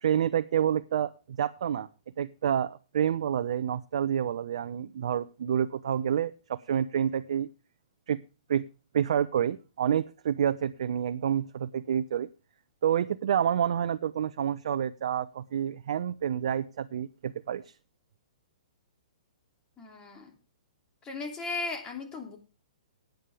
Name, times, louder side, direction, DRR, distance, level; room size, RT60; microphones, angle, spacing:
voice 1, 0.0-1.9 2.2-7.5 8.1-8.2 8.5-8.7 8.9-12.3 12.8-17.7, right 9 dB, 65° right, 11 dB, 0.7 m, -28 dB
voice 2, 19.8-20.3 21.0-22.4, left 3 dB, 20° left, 2 dB, 3.0 m, -36 dB
17.5 x 9.3 x 3.5 m, 0.32 s
hypercardioid pair, 125°, 4 cm